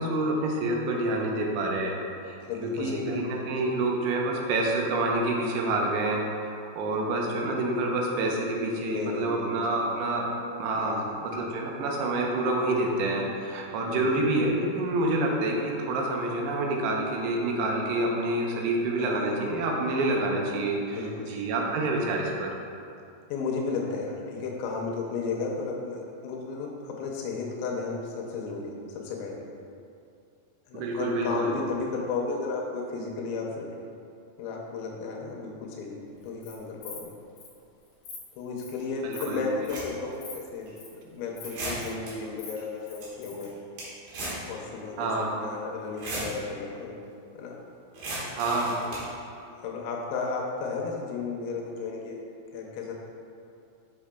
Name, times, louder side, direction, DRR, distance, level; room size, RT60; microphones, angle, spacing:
voice 1, 0.0-2.0 2.3-6.2 6.5-10.3 10.6-21.0 21.3-22.5 30.7-31.6 39.0-39.4 45.0-45.3 48.3-48.8, right 2 dB, 80° right, 0 dB, 2.9 m, -27 dB
voice 2, 2.4-3.2 3.5-3.7 8.9-9.8 10.7-11.1 13.9-14.2 19.0-19.3 20.9-21.4 22.0-22.1 23.3-29.5 30.7-33.8 34.4-37.1 38.4-43.5 44.5-47.0 47.3-47.6 48.9-49.0 49.6-52.2 52.5-52.9, left 4 dB, 85° left, -1 dB, 3.0 m, -34 dB
Insect, 36.2-36.5 36.8-37.0 37.4-37.5 37.8-38.2 38.6-38.8 39.1-39.3 39.6-39.8 40.2-40.3 40.6-40.9 41.4-41.9 42.2-43.5, left 5 dB, 65° left, 2.3 m, -43 dB
sound 1, 38.8-38.9 39.5-40.1 40.7-40.8 41.4-42.1 42.6-42.7 42.8-43.1 43.4-44.5 44.7-44.8 45.8-46.3 47.9-49.1, right 1 dB, 60° right, 2.7 m, -35 dB
7.9 x 5.9 x 2.2 m, 2.5 s
omnidirectional pair, 5.2 m